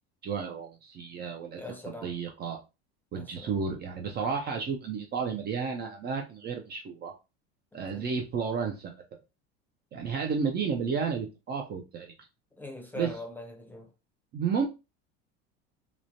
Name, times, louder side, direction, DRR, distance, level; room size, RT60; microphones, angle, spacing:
voice 1, 0.2-2.6 3.1-7.1 7.7-9.0 9.9-12.1 12.9-13.2 14.3-14.7, right 6 dB, 30° right, 0.5 m, -32 dB
voice 2, 1.6-2.1 3.2-3.5 7.9-8.0 12.6-13.9, left 2 dB, 5° left, 0.7 m, -42 dB
3.0 x 2.0 x 2.6 m
supercardioid pair, 125°, 31 cm